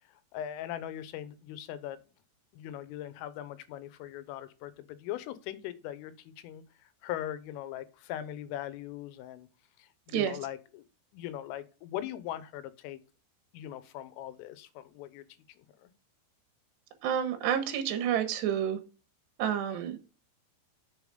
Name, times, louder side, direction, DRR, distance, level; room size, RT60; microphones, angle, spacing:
voice 1, 0.3-2.0 2.5-9.5 9.8-10.8 11.1-13.0 13.5-15.3 15.8-15.9, left 12 dB, 90° left, 3.5 m, -40 dB
voice 2, 17.0-18.8 19.4-20.1, right 9 dB, 70° right, 3.2 m, -29 dB
8.3 x 7.0 x 5.1 m
omnidirectional pair, 5.6 m